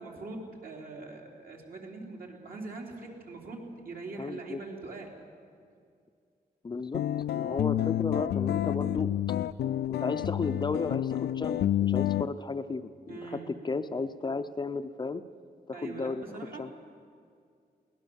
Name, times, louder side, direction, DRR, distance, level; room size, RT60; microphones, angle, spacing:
voice 1, 0.0-5.1 13.1-13.8 15.7-16.6, right 3 dB, 60° right, 0 dB, 3.7 m, -42 dB
voice 2, 4.2-4.6 6.6-7.0 7.3-9.1 9.9-15.2 15.7-16.2 16.6-16.8, left 4 dB, 25° left, 9 dB, 0.6 m, -34 dB
sound 1, 6.9-12.3, left 12 dB, 90° left, 0.4 m, -29 dB
22.5 x 18.0 x 7.1 m, 2.3 s
wide cardioid pair, 140°, 17 cm